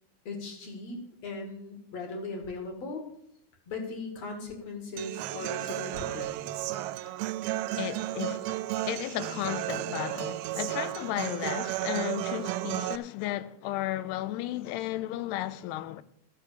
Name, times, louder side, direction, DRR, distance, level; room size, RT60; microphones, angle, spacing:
voice 1, 0.2-3.1 3.7-6.4, left 3 dB, 45° left, 2.9 m, -38 dB
Human voice / Acoustic guitar, 5.0-13.0, right 15 dB, 80° right, 2.3 m, -33 dB
voice 2, 7.1-7.4 7.7-16.0, left 14 dB, 85° left, 2.6 m, -34 dB
14.0 x 6.3 x 6.8 m
omnidirectional pair, 4.7 m